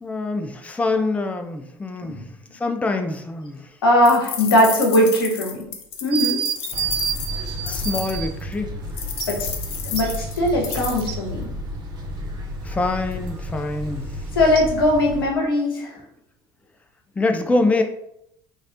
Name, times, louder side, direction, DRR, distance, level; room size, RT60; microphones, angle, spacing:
voice 1, 0.0-3.8 7.7-8.7 12.6-14.3 17.2-17.8, left 2 dB, 10° left, 6 dB, 0.4 m, -25 dB
voice 2, 3.8-5.7 6.0-6.4 9.3-9.5 9.8-11.5 14.3-16.0, left 1 dB, 85° left, 0 dB, 0.9 m, -19 dB
sound 1, 4.0-8.2 9.0-11.1, left 7 dB, 55° left, 0.7 m, -31 dB
sound 2, 6.1-8.3 9.2-9.3 10.0-11.2 14.6-14.7, right 9 dB, 60° right, 0.4 m, -28 dB
sound 3, 6.7-15.2, left 1 dB, 35° right, 1.1 m, -32 dB
4.1 x 3.2 x 2.5 m, 0.76 s
figure-of-eight pair, 65°, 12 cm